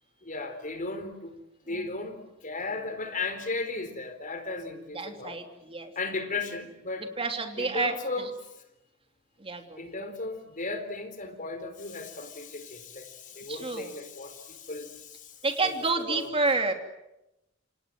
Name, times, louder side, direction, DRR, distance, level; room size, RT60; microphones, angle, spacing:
voice 1, 0.2-1.4 1.6-5.4 6.0-7.1 7.6-8.3 9.8-16.5, left 3 dB, 40° left, 8 dB, 4.0 m, -36 dB
voice 2, 4.9-5.9 7.2-8.3 9.4-9.8 13.5-13.9 15.4-16.7, right 3 dB, 30° right, 5 dB, 3.2 m, -29 dB
28.0 x 27.0 x 7.8 m, 0.91 s
head